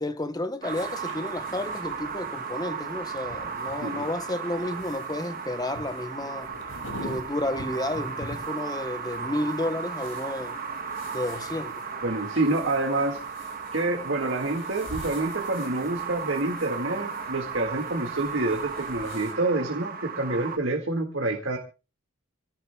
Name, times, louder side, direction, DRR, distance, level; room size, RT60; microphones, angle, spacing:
voice 1, 0.0-6.5 7.0-10.6 11.1-11.7, left 1 dB, 20° left, 0.9 m, -31 dB
sound 1, 0.6-20.6, right 5 dB, 40° right, 1.2 m, -35 dB
sound 2, 0.7-19.3, left 1 dB, 70° left, 6.3 m, -46 dB
voice 2, 3.8-4.1 12.0-13.2 13.7-21.6, right 2 dB, 60° right, 1.9 m, -27 dB
27.5 x 17.5 x 2.3 m
head